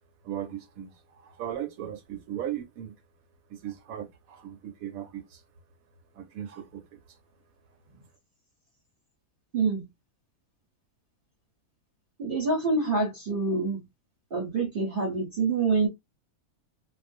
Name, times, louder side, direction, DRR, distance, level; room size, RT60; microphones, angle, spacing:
voice 1, 0.2-3.0 3.5-5.4 6.1-7.2, right 10 dB, 70° right, 1.0 m, -37 dB
voice 2, 12.2-13.8 14.3-15.9, right 3 dB, 45° right, 0.8 m, -26 dB
2.4 x 2.2 x 2.5 m
omnidirectional pair, 1.6 m